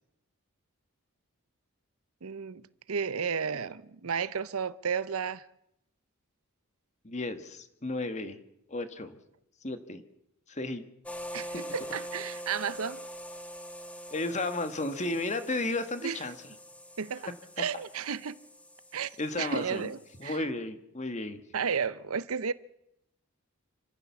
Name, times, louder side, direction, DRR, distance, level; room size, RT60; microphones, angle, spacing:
voice 1, 2.2-2.6 2.9-5.5 11.3-13.0 16.0-16.2 17.0-17.3 17.6-18.4 18.9-19.1 19.4-20.4 21.5-22.5, right 6 dB, 80° right, 0.7 m, -32 dB
voice 2, 7.0-8.4 8.7-9.2 9.6-10.0 10.5-10.9 11.5-11.6 14.1-16.5 19.2-19.9 20.2-21.4, left 2 dB, 30° left, 1.5 m, -33 dB
sound 1, 11.1-20.4, equal, 5° left, 1.4 m, -44 dB
27.0 x 15.0 x 7.1 m
head